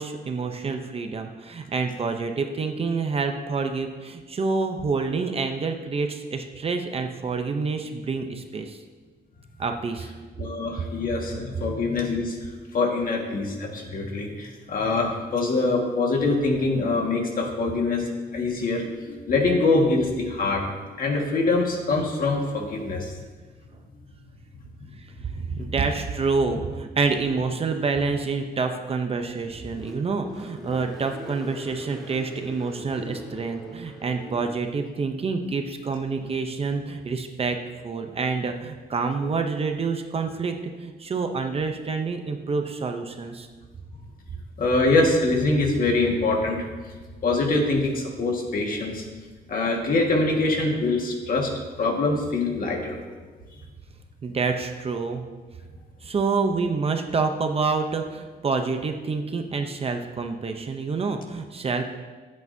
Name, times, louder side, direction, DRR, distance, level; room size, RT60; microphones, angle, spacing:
voice 1, 0.0-8.8 9.6-10.1 25.2-43.5 54.2-55.2 56.0-61.9, right 4 dB, 35° right, 6 dB, 0.6 m, -27 dB
voice 2, 10.4-23.2 25.3-25.7 32.8-33.1 39.2-39.3 44.6-46.7 47.2-49.0 49.5-51.5 51.8-53.0, left 3 dB, 50° left, 1 dB, 1.7 m, -24 dB
Car, 29.1-34.6, equal, ahead, 1.8 m, -41 dB
15.0 x 8.5 x 2.7 m, 1.4 s
wide cardioid pair, 155°, 18 cm